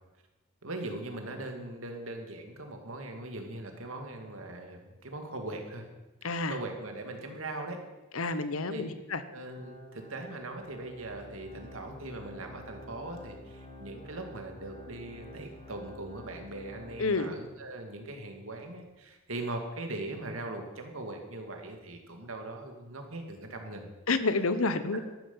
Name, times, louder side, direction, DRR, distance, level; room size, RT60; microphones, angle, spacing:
voice 1, 0.6-5.8 6.2-7.8 8.3-8.8 9.3-23.9 24.9-25.0, right 2 dB, 75° right, 4 dB, 2.4 m, -40 dB
voice 2, 6.2-6.6 8.1-9.2 17.0-17.3 24.1-25.0, left 3 dB, 80° left, 12 dB, 1.0 m, -29 dB
Organ, 9.4-17.4 17.8-17.9 18.6-18.7, equal, 35° left, 4.8 m, -49 dB
13.5 x 13.0 x 5.7 m, 1.1 s
head